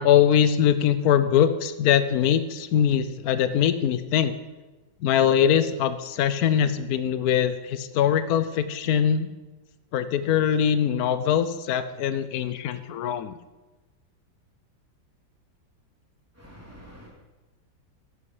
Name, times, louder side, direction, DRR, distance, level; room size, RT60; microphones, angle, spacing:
voice 1, 0.0-4.3 5.0-9.3 9.9-13.4, left 9 dB, 65° left, 12 dB, 1.0 m, -22 dB
voice 2, 16.3-17.1, equal, 10° right, -4 dB, 3.1 m, -47 dB
11.5 x 9.7 x 4.9 m, 1.1 s
omnidirectional pair, 2.0 m